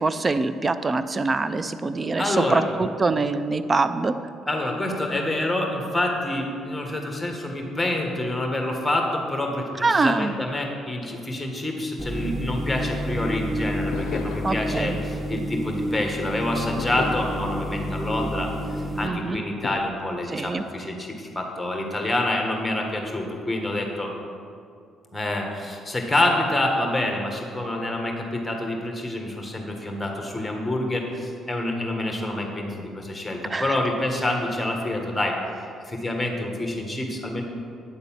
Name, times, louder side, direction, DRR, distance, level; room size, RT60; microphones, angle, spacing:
voice 1, 0.0-4.2 9.8-10.3 14.4-15.0 19.0-19.4 20.3-20.6 33.4-33.8, right 3 dB, 30° right, 12 dB, 0.4 m, -24 dB
voice 2, 2.2-2.6 4.5-24.1 25.1-35.4 35.8-37.4, left 1 dB, 10° left, 2 dB, 1.5 m, -27 dB
sound 1, 12.0-19.1, equal, 10° right, 0.8 m, -30 dB
sound 2, 13.9-16.2 16.8-19.0 19.6-19.8, left 6 dB, 75° left, 0.5 m, -37 dB
9.3 x 4.0 x 7.2 m, 2.3 s
cardioid pair, 85°, 0 cm